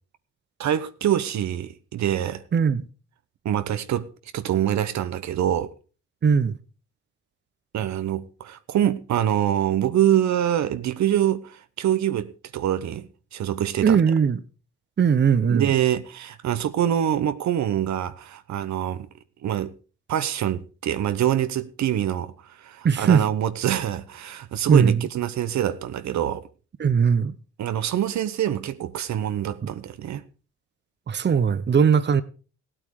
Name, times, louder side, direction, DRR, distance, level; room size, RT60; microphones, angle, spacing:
voice 1, 0.6-2.4 3.4-4.1 4.3-5.7 7.7-14.0 15.5-19.1 19.4-19.7 20.1-26.4 27.6-30.2, right 11 dB, 65° right, 1.0 m, -25 dB
voice 2, 2.5-2.8 6.2-6.6 13.8-14.4 15.0-15.7 22.8-23.2 24.7-25.0 26.8-27.3 31.1-32.2, right 6 dB, 35° right, 0.9 m, -19 dB
16.5 x 8.8 x 4.8 m
cardioid pair, 90°, 30 cm